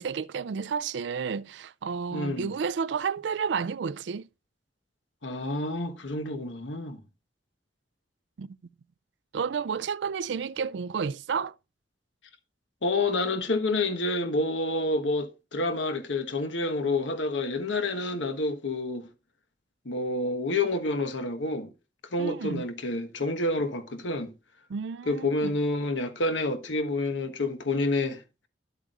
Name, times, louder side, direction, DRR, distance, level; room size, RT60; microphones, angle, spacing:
voice 1, 0.0-4.3 8.4-8.6 9.3-11.5 22.2-22.6 24.7-25.6, right 6 dB, 70° right, 0.4 m, -31 dB
voice 2, 2.1-2.5 5.2-7.0 12.8-19.1 19.8-21.7 22.1-24.3 25.1-28.2, left 2 dB, 90° left, 1.3 m, -28 dB
11.5 x 8.2 x 2.5 m
head